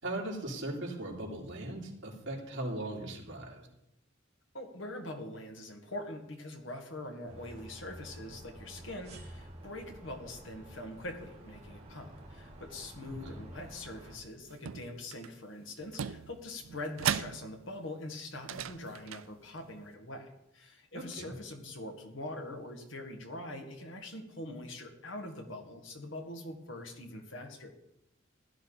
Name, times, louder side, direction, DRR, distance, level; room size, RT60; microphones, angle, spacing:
voice 1, 0.0-3.7 13.1-13.4 20.9-21.3, right 1 dB, 60° right, -3 dB, 3.3 m, -39 dB
voice 2, 4.5-27.7, left 1 dB, 70° left, 4 dB, 1.9 m, -43 dB
sound 1, 7.3-14.2, right 1 dB, 30° right, 3.1 m, -50 dB
sound 2, 14.5-15.3 15.8-17.9 18.3-19.7, right 8 dB, 90° right, 0.5 m, -38 dB
16.0 x 11.0 x 4.1 m, 0.86 s
head